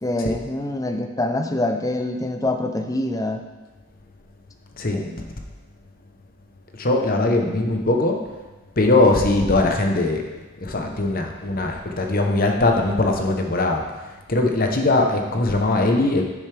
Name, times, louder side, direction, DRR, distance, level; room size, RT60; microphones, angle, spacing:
voice 1, 0.0-3.5 4.9-5.3, left 1 dB, 15° left, 5 dB, 0.6 m, -25 dB
voice 2, 6.8-8.2 8.8-10.2 10.6-13.8 14.3-16.2, left 2 dB, 45° left, 2 dB, 1.0 m, -20 dB
10.5 x 6.9 x 3.5 m, 1.2 s
head